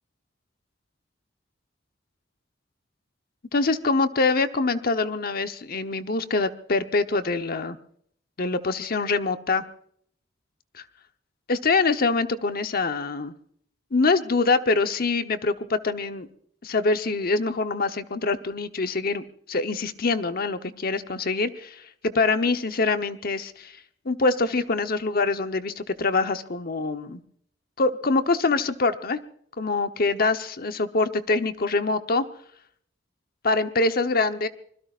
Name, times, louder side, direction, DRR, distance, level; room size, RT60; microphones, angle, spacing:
voice 1, 3.5-7.8 8.4-9.6 10.7-10.8 11.5-13.3 13.9-16.3 16.6-23.7 24.0-27.2 27.8-29.2 29.6-32.3 33.4-34.5, left 3 dB, 55° left, 9 dB, 1.0 m, -24 dB
24.5 x 21.5 x 2.5 m, 0.65 s
head